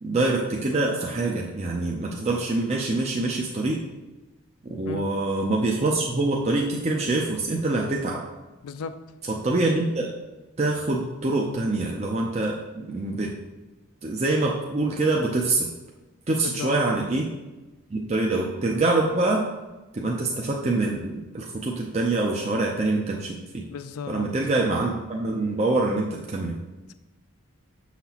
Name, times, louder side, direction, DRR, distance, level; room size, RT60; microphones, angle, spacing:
voice 1, 0.0-3.8 4.8-8.2 9.2-10.1 10.6-13.3 14.0-15.7 16.3-17.3 17.9-19.5 19.9-23.6 24.1-26.5, right 2 dB, 30° right, -1 dB, 0.5 m, -25 dB
voice 2, 8.6-9.1 16.4-16.8 23.7-24.4, left 5 dB, 80° left, 11 dB, 0.4 m, -35 dB
7.0 x 5.8 x 2.9 m, 1.1 s
head